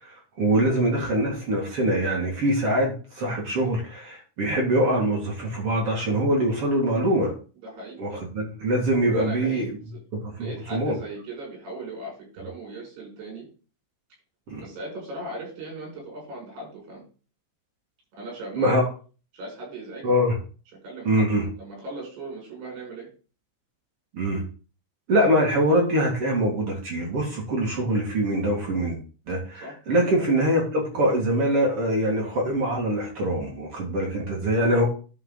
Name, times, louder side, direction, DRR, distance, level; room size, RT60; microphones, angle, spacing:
voice 1, 0.0-7.3 8.0-9.7 10.1-10.9 14.5-14.6 18.5-18.8 20.0-20.3 21.0-21.4 24.1-24.4 25.1-29.0 29.3-34.9, right 1 dB, 45° right, -1 dB, 2.0 m, -23 dB
voice 2, 7.6-8.0 9.1-10.0 10.4-13.5 14.6-17.0 18.1-18.8 19.3-20.2 20.8-21.3 21.6-23.1 29.6-29.8, right 2 dB, 70° right, -2 dB, 7.4 m, -38 dB
11.5 x 5.6 x 3.8 m, 0.37 s
omnidirectional pair, 5.0 m